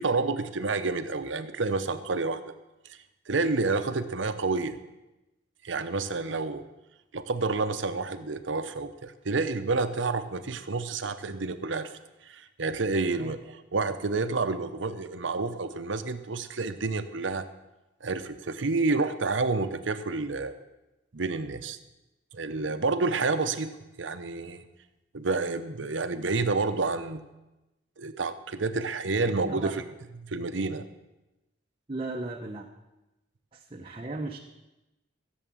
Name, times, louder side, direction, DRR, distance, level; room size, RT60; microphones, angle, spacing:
voice 1, 0.0-2.4 2.9-3.0 3.3-4.8 5.6-6.6 7.1-11.9 12.2-17.5 18.0-20.5 21.1-21.8 22.3-23.7 24.0-24.7 25.1-27.2 28.0-29.8 30.1-30.8, right 3 dB, 75° right, 10 dB, 0.8 m, -29 dB
voice 2, 31.9-32.7 33.5-34.4, right 2 dB, 30° right, 1 dB, 0.8 m, -36 dB
14.5 x 7.3 x 7.3 m, 0.99 s
head